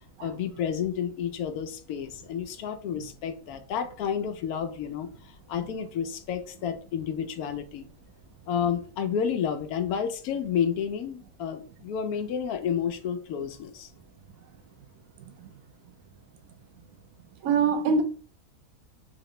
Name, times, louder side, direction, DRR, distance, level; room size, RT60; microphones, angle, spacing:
voice 1, 0.2-7.9 8.5-13.9, left 8 dB, 85° left, 1.1 m, -30 dB
voice 2, 17.4-18.0, right 5 dB, 70° right, 1.0 m, -24 dB
3.6 x 2.9 x 3.1 m
omnidirectional pair, 1.5 m